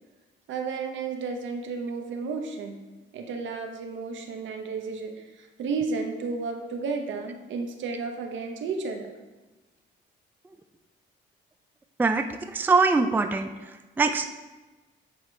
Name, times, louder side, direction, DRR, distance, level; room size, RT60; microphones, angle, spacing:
voice 1, 0.5-2.8 3.1-5.1 5.4-9.1, right 4 dB, 70° right, 4 dB, 0.9 m, -32 dB
voice 2, 12.5-13.5 14.0-14.3, right 4 dB, 10° right, 7 dB, 0.3 m, -22 dB
8.3 x 3.0 x 4.4 m, 1.2 s
cardioid pair, 90°, 20 cm